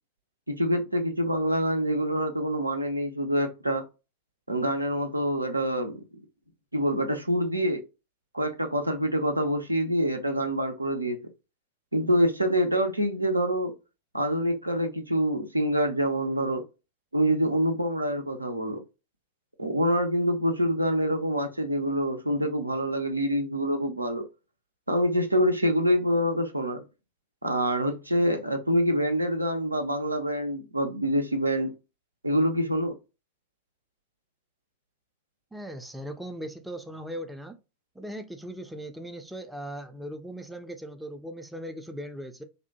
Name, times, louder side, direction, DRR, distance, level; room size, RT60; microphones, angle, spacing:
voice 1, 0.5-3.9 4.5-6.0 6.7-7.8 8.3-11.2 11.9-13.7 14.1-16.6 17.1-18.8 19.6-24.2 24.9-26.8 27.4-31.7 32.2-32.9, equal, 85° right, 0.4 m, -26 dB
voice 2, 35.5-37.6 38.0-42.4, equal, ahead, 0.4 m, -39 dB
2.7 x 2.1 x 2.7 m
figure-of-eight pair, 90°, 0 cm